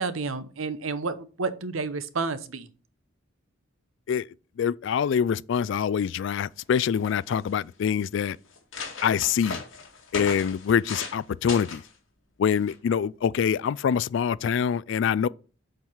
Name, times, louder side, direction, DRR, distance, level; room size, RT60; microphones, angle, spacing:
voice 1, 0.0-2.7, right 4 dB, 90° right, 0.9 m, -30 dB
voice 2, 4.6-8.4 9.0-9.6 10.1-11.8 12.4-15.3, left 7 dB, 65° left, 0.3 m, -25 dB
sound 1, 6.6-6.7 6.9-7.5 8.1-8.2 8.5-11.2 11.5-11.9 12.7-12.9, left 4 dB, 80° left, 2.1 m, -37 dB
7.6 x 4.7 x 5.6 m
head